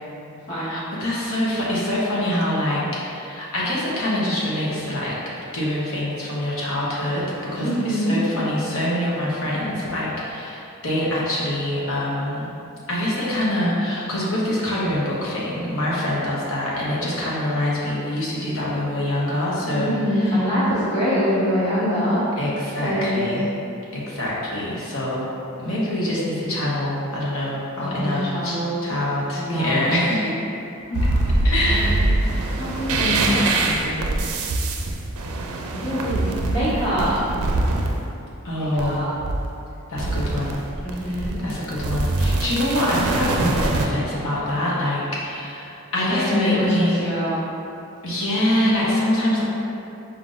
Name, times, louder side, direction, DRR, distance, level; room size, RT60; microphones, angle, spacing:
voice 1, 0.7-5.2 5.5-7.2 7.5-12.5 12.9-20.0 22.4-23.4 23.9-25.3 25.6-28.6 28.8-30.3 31.4-32.4 38.4-39.0 39.9-40.6 41.0-47.1 48.0-49.4, left 1 dB, 70° left, -6 dB, 1.0 m, -25 dB
voice 2, 7.6-8.2 19.7-22.2 22.8-23.3 27.8-28.8 29.4-30.0 30.9-31.3 31.6-32.1 32.5-34.0 35.7-37.2 38.6-39.1 40.8-41.4 46.0-47.4, equal, 50° left, -13 dB, 1.2 m, -25 dB
sound 1, 30.9-38.0 38.8-39.6 40.0-43.9, right 2 dB, 75° right, 0.4 m, -24 dB
4.5 x 3.9 x 2.5 m, 2.7 s
head